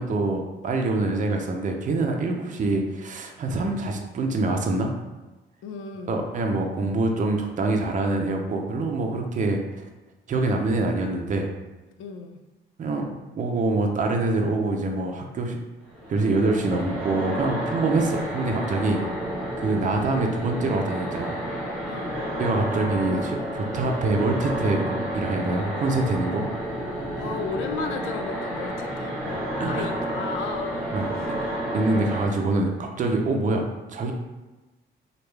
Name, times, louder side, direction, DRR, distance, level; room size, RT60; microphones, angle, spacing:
voice 1, 0.0-4.9 6.1-9.6 10.3-11.5 12.8-13.1 13.3-15.6 16.1-19.0 19.6-21.4 22.4-26.5 29.6-29.9 30.9-31.1 31.7-34.1, right 2 dB, 40° right, 2 dB, 0.5 m, -25 dB
voice 2, 5.6-6.2 12.0-12.4 18.8-19.2 21.9-22.3 27.2-29.4 29.7-31.0, left 5 dB, 85° left, 5 dB, 0.4 m, -34 dB
sound 1, 15.9-32.2, right 1 dB, 5° left, 1.1 m, -30 dB
3.1 x 2.3 x 3.3 m, 1.1 s
cardioid pair, 90°, 20 cm